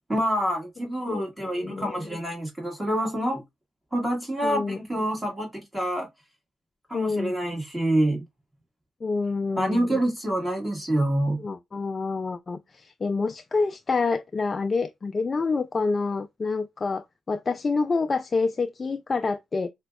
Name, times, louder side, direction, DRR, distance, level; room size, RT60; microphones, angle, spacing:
voice 1, 0.1-3.4 3.9-6.1 6.9-8.2 9.6-11.4, right 1 dB, 15° right, 1.6 m, -27 dB
voice 2, 1.1-2.0 4.4-4.8 6.9-7.3 9.0-10.0 11.4-19.7, left 4 dB, 40° left, 0.3 m, -27 dB
4.9 x 2.2 x 2.2 m
supercardioid pair, 55°, 0 cm